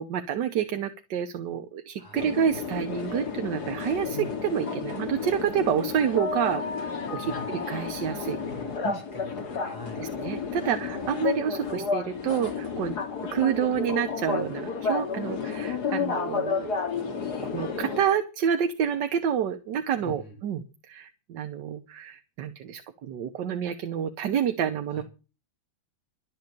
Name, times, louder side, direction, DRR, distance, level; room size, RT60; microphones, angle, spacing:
voice 1, 0.0-6.6 7.1-8.4 8.8-9.0 9.6-13.0 13.3-16.9 17.4-25.0, right 8 dB, 70° right, 8 dB, 1.5 m, -28 dB
voice 2, 2.0-2.3 4.0-4.4 7.2-7.5 8.2-10.1 20.0-20.4 24.9-25.0, left 3 dB, 25° left, 2 dB, 6.3 m, -43 dB
sound 1, 2.1-18.0, left 5 dB, 55° left, 2.6 m, -31 dB
12.0 x 7.9 x 8.4 m, 0.33 s
omnidirectional pair, 2.1 m